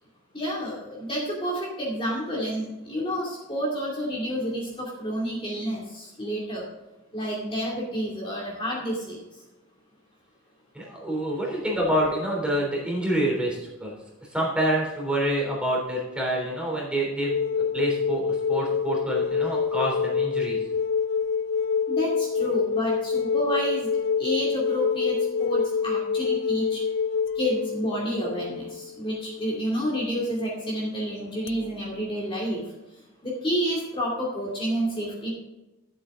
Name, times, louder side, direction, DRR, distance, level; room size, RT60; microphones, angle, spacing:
voice 1, 0.3-6.6 7.1-9.2 21.9-23.9 24.2-26.8 27.4-32.6 33.2-35.3, equal, 25° left, -4 dB, 2.5 m, -29 dB
voice 2, 10.7-13.9 14.3-20.6, right 1 dB, 5° right, -3 dB, 3.3 m, -27 dB
sound 1, 17.3-29.7 31.5-31.6, left 6 dB, 60° left, 0.4 m, -26 dB
13.0 x 7.9 x 3.7 m, 1.0 s
head